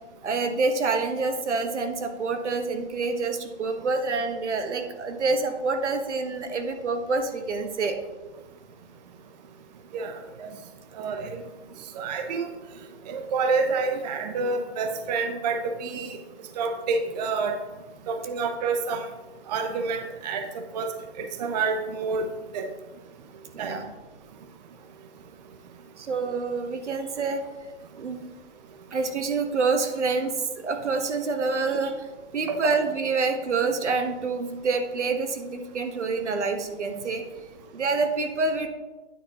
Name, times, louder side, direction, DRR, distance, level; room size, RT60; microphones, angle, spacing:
voice 1, 0.2-8.0 23.5-23.9 26.0-27.4 28.0-28.2 28.9-32.1 32.3-37.2 37.7-38.7, right 4 dB, 80° right, 6 dB, 1.3 m, -27 dB
voice 2, 11.0-11.4 12.0-12.5 13.1-16.2 16.6-17.6 18.1-19.0 19.5-20.4 20.7-20.9 21.2-22.3 22.5-22.7 23.6-23.8 32.5-32.6, right 4 dB, 35° right, 6 dB, 0.7 m, -28 dB
9.1 x 8.3 x 2.9 m, 1.2 s
hypercardioid pair, 150°, 34 cm